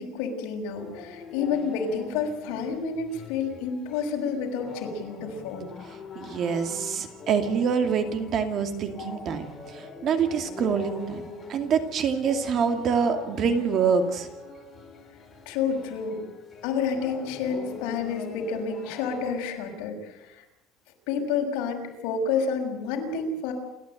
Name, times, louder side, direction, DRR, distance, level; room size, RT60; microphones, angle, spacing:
voice 1, 0.0-5.7 15.5-16.2 16.6-20.4 21.1-23.5, left 5 dB, 70° left, 1 dB, 6.3 m, -29 dB
sound 1, 0.7-19.5, left 4 dB, 20° left, 4.5 m, -43 dB
voice 2, 6.2-14.3, right 6 dB, 35° right, 7 dB, 2.4 m, -26 dB
29.0 x 13.5 x 9.2 m, 0.92 s
cardioid pair, 165°, 0 cm